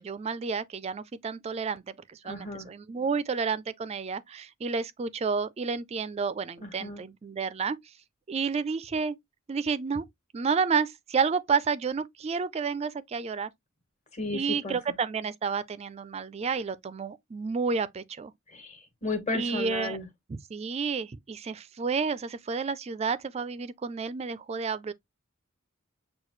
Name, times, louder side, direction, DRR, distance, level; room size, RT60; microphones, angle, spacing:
voice 1, 0.0-7.8 8.3-9.2 9.5-10.0 10.3-13.5 14.3-18.3 19.3-20.0 20.3-24.9, right 5 dB, 30° right, 0.3 m, -30 dB
voice 2, 2.2-2.7 6.6-7.0 14.1-14.8 18.5-20.1, left 2 dB, 35° left, 1.4 m, -34 dB
6.5 x 2.2 x 3.1 m
head